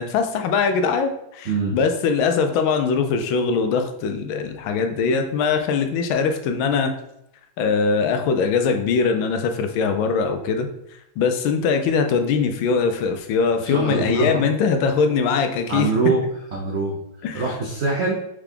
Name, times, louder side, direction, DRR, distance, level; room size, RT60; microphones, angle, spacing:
voice 1, 0.0-6.9 7.6-10.7 11.2-15.9 17.2-17.4, left 5 dB, 85° left, 6 dB, 1.4 m, -21 dB
voice 2, 1.5-1.8 13.6-14.4 15.7-16.2 16.5-17.0 17.3-18.1, right 3 dB, 70° right, -2 dB, 0.6 m, -23 dB
3.9 x 3.7 x 3.4 m, 0.80 s
omnidirectional pair, 2.1 m